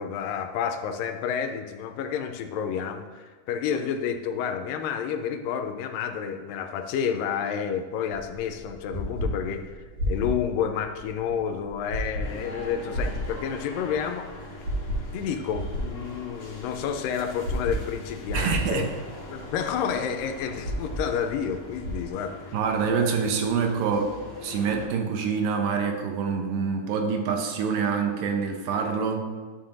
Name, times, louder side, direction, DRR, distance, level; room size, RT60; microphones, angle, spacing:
voice 1, 0.0-14.6 15.1-18.9 19.3-22.6, left 7 dB, 85° left, 7 dB, 2.2 m, -30 dB
sound 1, 8.1-22.1, equal, 45° right, 2.1 m, -34 dB
sound 2, 12.2-24.9, left 2 dB, 55° left, 2.3 m, -42 dB
voice 2, 18.3-18.9 22.5-24.1 24.4-29.3, right 6 dB, 80° right, 3 dB, 2.4 m, -26 dB
11.5 x 5.5 x 2.6 m, 1.4 s
omnidirectional pair, 3.9 m